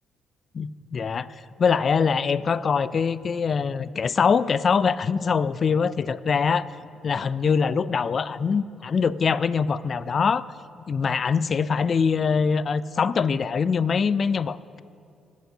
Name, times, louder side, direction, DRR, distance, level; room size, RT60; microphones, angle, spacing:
voice 1, 0.5-6.7 7.0-10.5 10.9-14.8, left 6 dB, 45° left, 16 dB, 0.3 m, -23 dB
21.5 x 8.1 x 2.8 m, 2.5 s
cardioid pair, 90°, 0 cm